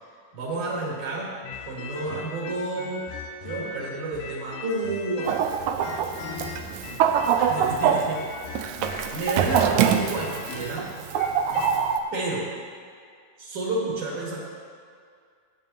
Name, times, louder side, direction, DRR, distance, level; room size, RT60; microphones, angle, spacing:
voice 1, 0.3-1.3 1.7-3.1 3.4-5.4 7.4-8.3 9.1-10.9 12.1-12.5 13.4-14.4, right 2 dB, 65° right, -5 dB, 3.2 m, -30 dB
sound 1, 1.4-5.5 5.8-11.8, left 5 dB, 90° left, 2.7 m, -39 dB
Chicken rooster, 5.3-12.0, right 8 dB, 80° right, 1.8 m, -24 dB
16.5 x 9.2 x 2.8 m, 2.2 s
omnidirectional pair, 3.8 m